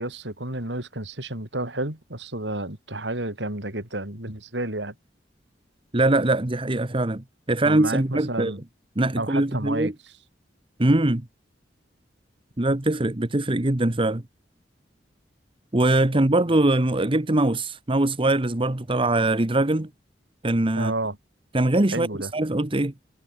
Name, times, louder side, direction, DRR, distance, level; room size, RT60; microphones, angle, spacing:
voice 1, 0.0-4.9 7.6-8.6 9.2-9.9 20.8-21.2 21.9-22.3, right 2 dB, 75° right, 6.5 m, -31 dB
voice 2, 5.9-8.5 9.0-9.9 10.8-11.2 12.6-14.2 15.7-19.9 20.4-20.9 21.5-22.9, right 2 dB, 30° right, 1.2 m, -22 dB
head